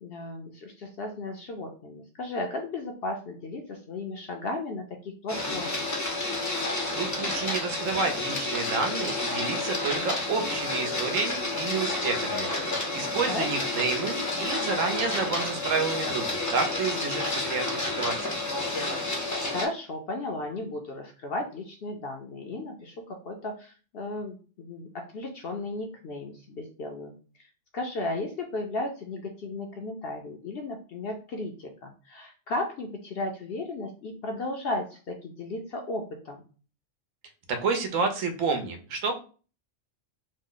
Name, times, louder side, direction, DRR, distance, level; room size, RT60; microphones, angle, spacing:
voice 1, 0.0-5.9 13.3-13.7 19.5-27.1 27.7-36.4, left 2 dB, 60° left, 3 dB, 0.7 m, -35 dB
Printer, 5.3-19.7, left 2 dB, 25° left, 0.4 m, -30 dB
voice 2, 6.9-12.5 12.9-18.3 37.5-39.1, right 4 dB, 75° right, 6 dB, 1.1 m, -30 dB
3.0 x 2.1 x 3.7 m, 0.37 s
omnidirectional pair, 1.4 m